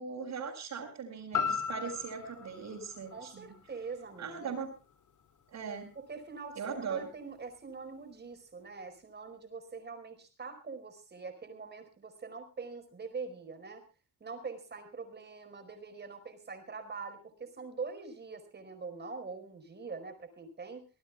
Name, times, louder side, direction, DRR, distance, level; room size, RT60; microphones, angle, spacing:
voice 1, 0.0-3.5 4.2-4.7 5.5-5.9 6.6-7.1, right 6 dB, 55° right, -4 dB, 6.1 m, -39 dB
sound 1, 1.3-5.4 5.9-6.0, left 6 dB, 60° left, 2.9 m, -38 dB
voice 2, 3.1-4.6 6.0-13.8 14.2-20.9, right 4 dB, 30° right, 7 dB, 4.7 m, -44 dB
25.5 x 19.0 x 2.3 m, 0.33 s
cardioid pair, 150°, 33 cm